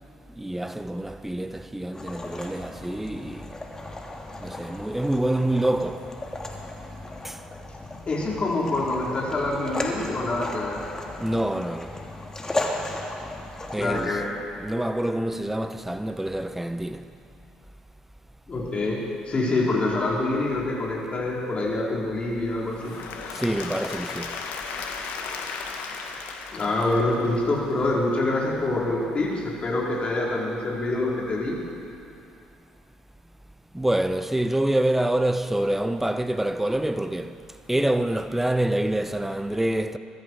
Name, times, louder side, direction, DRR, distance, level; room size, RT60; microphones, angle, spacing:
voice 1, 0.4-3.5 4.4-6.0 7.2-7.4 11.2-11.9 13.7-14.2 14.6-17.0 23.3-24.3 33.7-37.3 37.7-40.0, right 1 dB, 5° right, 0.9 m, -26 dB
sound 1, 1.9-14.1, left 2 dB, 15° left, 2.4 m, -35 dB
voice 2, 8.1-10.8 13.8-14.3 18.5-22.9 26.5-31.6, left 2 dB, 35° left, 4.7 m, -26 dB
Applause / Crowd, 22.7-27.6, left 5 dB, 65° left, 1.6 m, -35 dB
21.0 x 13.0 x 4.9 m
hypercardioid pair, 55°, 3 cm